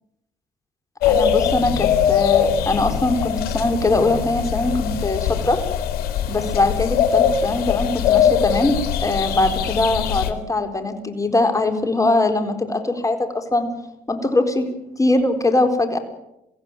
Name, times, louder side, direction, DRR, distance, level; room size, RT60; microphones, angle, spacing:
sound 1, 1.0-10.3, left 8 dB, 75° left, 2.6 m, -21 dB
voice 1, 1.1-5.6 6.3-13.7 14.1-14.7 15.0-16.0, left 2 dB, 20° left, 6 dB, 4.2 m, -21 dB
23.5 x 16.0 x 9.1 m, 0.86 s
supercardioid pair, 75°, 16 cm